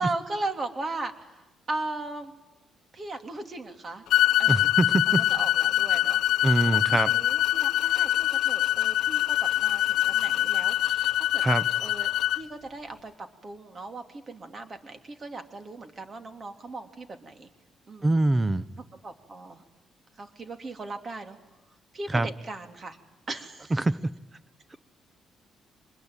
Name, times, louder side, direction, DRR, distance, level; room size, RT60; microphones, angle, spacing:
voice 1, 0.0-2.3 2.9-4.0 4.4-4.6 5.1-6.2 6.7-11.4 11.8-12.1 12.4-17.5 17.9-18.2 19.0-19.6 20.2-21.4 21.9-23.0 23.3-23.7, right 2 dB, 40° right, 3.2 m, -37 dB
sound 1, 4.1-12.4, left 14 dB, 80° left, 0.8 m, -24 dB
voice 2, 4.5-5.2 6.4-7.1 11.4-11.6 18.0-18.7 22.1-22.3 23.7-24.0, right 2 dB, 20° right, 1.0 m, -24 dB
25.5 x 21.0 x 9.0 m
cardioid pair, 90°, 0 cm